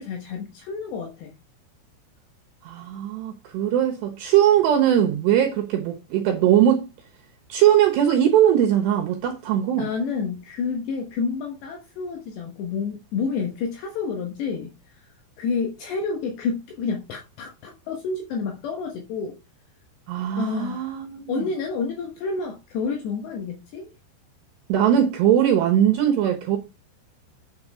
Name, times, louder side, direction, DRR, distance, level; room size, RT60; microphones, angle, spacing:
voice 1, 0.0-1.3 9.8-14.7 15.4-19.4 20.4-20.9 21.3-23.9, left 5 dB, 70° left, 3.2 m, -29 dB
voice 2, 2.6-6.9 7.5-9.8 20.1-21.5 24.7-26.6, right 10 dB, 70° right, 2.9 m, -20 dB
9.5 x 6.7 x 3.6 m
omnidirectional pair, 5.7 m